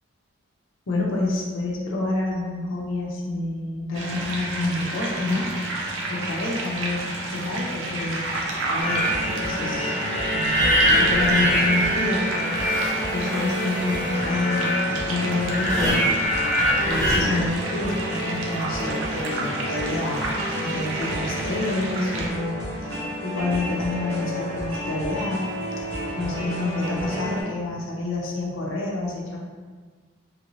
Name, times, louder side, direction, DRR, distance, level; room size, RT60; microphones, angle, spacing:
voice 1, 0.9-5.5 6.1-7.0 7.3-8.3 8.7-9.0 9.4-10.0 10.3-10.7 11.0-12.6 13.1-16.1 16.8-20.3 20.6-22.9 23.2-25.4 26.2-29.4, left 2 dB, 70° left, -3 dB, 0.6 m, -28 dB
sound 1, 3.9-22.3, right 2 dB, 65° right, 0.5 m, -31 dB
sound 2, 8.8-17.2, equal, 5° left, 0.9 m, -24 dB
sound 3, 8.9-27.4, equal, 85° right, 1.2 m, -31 dB
3.1 x 2.6 x 3.0 m, 1.5 s
head